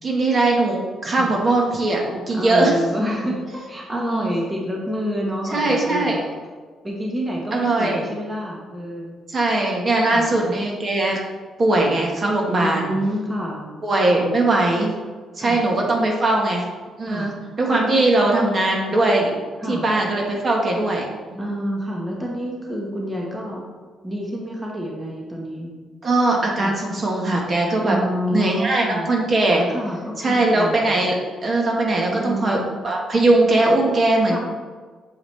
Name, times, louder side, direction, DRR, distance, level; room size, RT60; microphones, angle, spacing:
voice 1, 0.0-2.7 3.9-4.3 5.5-6.2 7.5-8.1 9.3-11.2 11.6-12.9 13.8-14.9 15.4-16.6 17.0-17.3 17.6-19.4 19.7-21.4 26.0-28.0 28.3-29.6 30.2-34.4, right 2 dB, 40° right, 0 dB, 1.3 m, -20 dB
voice 2, 2.3-6.2 6.8-9.2 10.0-10.3 12.5-13.7 14.1-14.3 15.4-15.6 17.1-17.3 17.7-18.1 19.6-19.8 21.4-23.7 24.0-25.7 26.6-26.7 27.8-29.1 29.7-31.0 32.0-32.7 34.3-34.4, equal, 15° right, -2 dB, 1.2 m, -28 dB
7.1 x 4.8 x 3.3 m, 1.4 s
cardioid pair, 90°, 0 cm